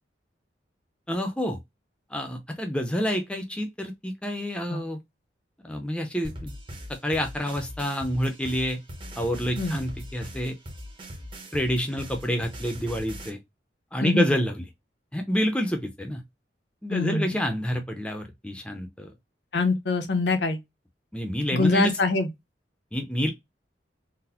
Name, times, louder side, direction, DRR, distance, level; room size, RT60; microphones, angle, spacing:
voice 1, 1.1-1.6 2.1-5.0 5.6-6.5 6.9-8.8 9.2-10.6 11.5-13.4 13.9-14.6 15.1-16.2 16.8-19.1 21.1-22.0 22.9-23.3, equal, 5° left, 0.5 m, -28 dB
sound 1, 6.2-13.3, equal, 30° right, 0.7 m, -40 dB
voice 2, 14.0-14.3 16.9-17.4 19.5-20.6 21.5-22.3, left 3 dB, 70° left, 0.7 m, -24 dB
3.9 x 2.0 x 2.8 m
head